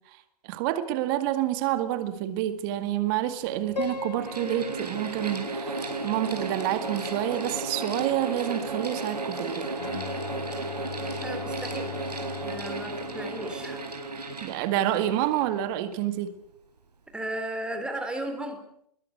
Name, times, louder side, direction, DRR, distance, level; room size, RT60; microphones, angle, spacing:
voice 1, 0.4-9.7 14.4-16.3, right 13 dB, 35° right, 2.1 m, -28 dB
Mechanical fan, 2.5-2.6 3.4-16.1, right 2 dB, 75° right, 5.3 m, -34 dB
Piano, 3.8-6.8, left 4 dB, 80° left, 2.7 m, -38 dB
Bowed string instrument, 9.8-13.9, left 11 dB, 55° left, 1.4 m, -41 dB
voice 2, 11.2-11.9 12.4-13.8 17.1-18.6, right 1 dB, 5° right, 3.8 m, -35 dB
22.0 x 21.5 x 8.1 m
figure-of-eight pair, 125°, 21 cm